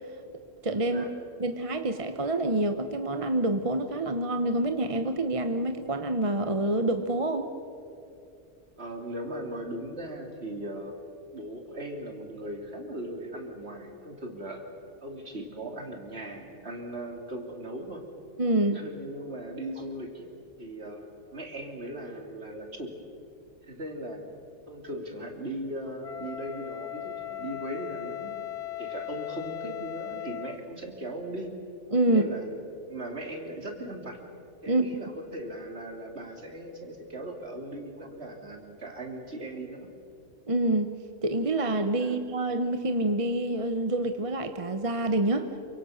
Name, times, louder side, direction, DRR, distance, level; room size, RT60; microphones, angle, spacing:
voice 1, 0.6-1.0 1.4-7.5 18.4-18.8 31.9-32.2 34.7-34.9 40.5-40.9 41.2-45.5, right 2 dB, 30° right, 8 dB, 1.0 m, -27 dB
voice 2, 8.8-10.9 11.3-14.6 15.0-18.0 18.7-20.3 20.6-21.1 21.3-22.9 23.6-24.3 24.7-28.3 28.8-31.5 32.0-32.6 32.9-34.2 34.6-39.9 42.0-42.2, right 1 dB, 55° right, 3 dB, 3.2 m, -38 dB
Wind instrument woodwind instrument, 26.0-30.6, left 13 dB, 60° left, 1.1 m, -38 dB
28.0 x 25.0 x 6.6 m, 2.7 s
omnidirectional pair, 1.3 m